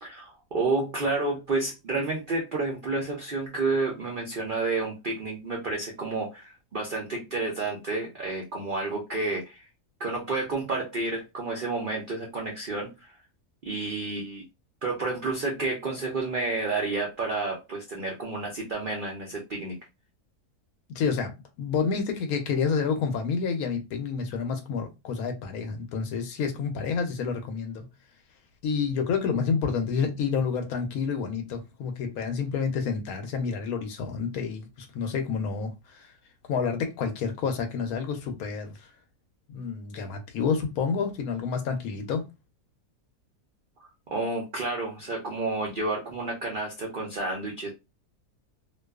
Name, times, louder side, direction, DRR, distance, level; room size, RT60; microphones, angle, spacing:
voice 1, 0.0-9.7 10.0-13.1 13.6-14.4 14.8-19.8 44.1-47.7, right 3 dB, 90° right, 0.4 m, -30 dB
voice 2, 20.9-27.9 28.6-36.1 36.5-38.9 39.5-42.2, left 5 dB, 70° left, 1.0 m, -29 dB
2.5 x 2.3 x 2.3 m
omnidirectional pair, 1.7 m